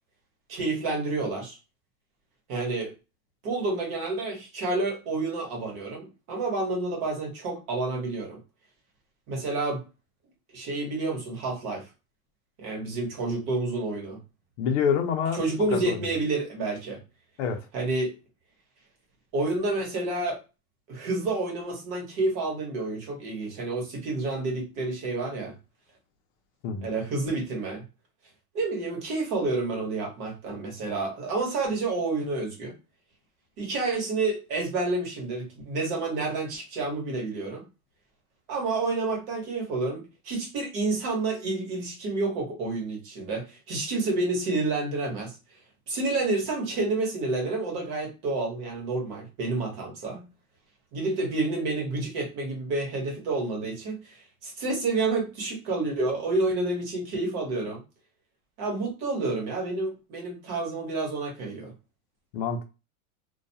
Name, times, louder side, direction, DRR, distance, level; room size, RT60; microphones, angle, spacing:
voice 1, 0.5-1.6 2.5-2.9 3.4-8.4 9.3-9.8 10.5-11.9 12.6-14.2 15.4-17.0 17.7-18.2 19.3-20.4 20.9-25.5 26.8-27.8 28.5-32.7 33.6-37.6 38.5-45.4 45.9-50.3 50.9-57.8 58.6-61.7, right 3 dB, 45° right, 1.1 m, -29 dB
voice 2, 14.6-15.4 15.7-16.0 17.4-17.6 26.6-26.9 62.3-62.6, left 7 dB, 55° left, 0.6 m, -26 dB
2.3 x 2.2 x 2.7 m
supercardioid pair, 145°, 44 cm